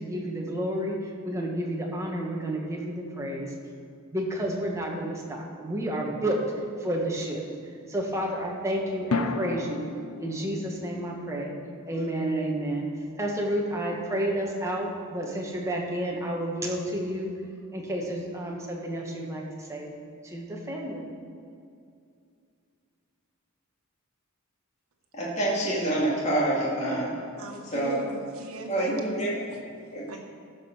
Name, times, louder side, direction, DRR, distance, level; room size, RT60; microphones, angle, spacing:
voice 1, 0.0-3.5 4.1-6.4 6.8-7.4 7.9-9.9 10.2-11.5 11.9-12.9 13.2-17.3 17.7-19.9 20.2-21.1, right 1 dB, 15° right, -1 dB, 1.4 m, -30 dB
sound 1, 9.1-13.4, left 3 dB, 90° left, 0.7 m, -36 dB
voice 2, 25.1-27.1 27.7-28.0 28.7-29.3 29.9-30.2, right 1 dB, 30° left, -6 dB, 2.5 m, -27 dB
voice 3, 27.4-29.2 30.1-30.2, right 1 dB, 75° right, 2 dB, 1.4 m, -38 dB
14.5 x 5.3 x 6.2 m, 2.3 s
head